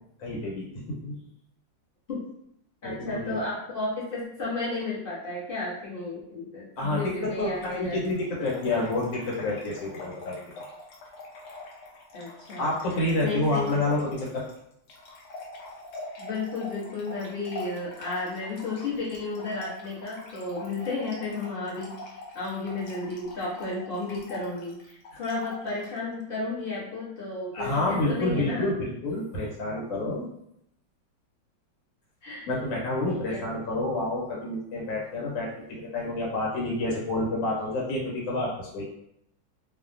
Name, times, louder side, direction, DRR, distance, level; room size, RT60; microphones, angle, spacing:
voice 1, 0.2-1.2 2.8-3.4 6.8-10.4 12.6-14.5 25.1-25.2 27.5-30.3 32.4-38.8, left 2 dB, 85° left, -3 dB, 1.6 m, -29 dB
voice 2, 2.8-8.0 12.1-13.9 16.2-28.7 32.2-32.6 33.1-33.4, left 3 dB, 45° left, -7 dB, 0.7 m, -33 dB
Trickle dribble / Fill (with liquid), 7.5-26.0, left 2 dB, 70° left, 1.2 m, -44 dB
3.2 x 2.0 x 2.5 m, 0.77 s
omnidirectional pair, 2.0 m